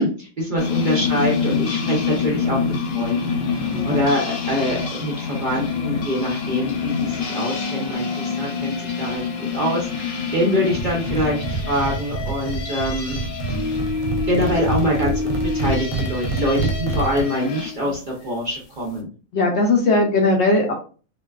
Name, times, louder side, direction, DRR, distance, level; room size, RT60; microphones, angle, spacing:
voice 1, 0.0-13.2 13.6-13.8 14.3-19.1, equal, 50° right, -3 dB, 0.6 m, -25 dB
sound 1, 0.6-17.7, left 5 dB, 85° left, 1.0 m, -26 dB
voice 2, 3.7-4.1 19.3-20.7, left 2 dB, 65° left, 1 dB, 0.8 m, -19 dB
sound 2, 10.7-17.2, right 3 dB, 75° right, 0.9 m, -27 dB
2.5 x 2.2 x 2.2 m, 0.37 s
omnidirectional pair, 1.4 m